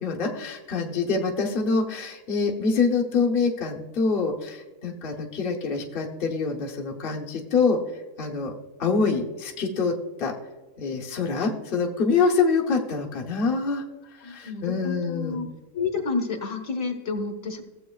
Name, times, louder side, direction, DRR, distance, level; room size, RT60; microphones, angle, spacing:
voice 1, 0.0-8.5 8.8-10.3 10.8-13.8 14.2-15.4, left 4 dB, 40° left, -1 dB, 1.1 m, -25 dB
voice 2, 14.2-15.5 15.7-17.6, left 4 dB, 55° left, 4 dB, 1.4 m, -30 dB
16.0 x 7.7 x 2.3 m, 1.2 s
omnidirectional pair, 1.7 m